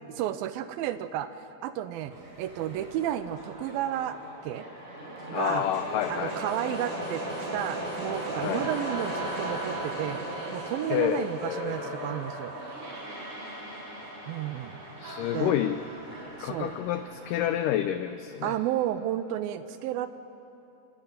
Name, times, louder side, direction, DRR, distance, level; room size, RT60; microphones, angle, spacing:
voice 1, 0.1-1.3 1.6-4.2 4.4-4.7 5.3-5.7 6.1-7.2 7.5-10.2 10.5-12.5 14.3-14.8 15.3-15.6 16.4-16.8 18.4-20.1, right 11 dB, 80° right, 12 dB, 2.3 m, -32 dB
sound 1, 2.1-18.1, right 1 dB, 60° right, 6.7 m, -37 dB
voice 2, 5.3-6.3 8.4-8.7 10.9-12.2 15.0-15.8 16.4-18.5, left 11 dB, 85° left, 10 dB, 1.9 m, -29 dB
29.5 x 12.5 x 9.3 m, 2.9 s
omnidirectional pair, 4.5 m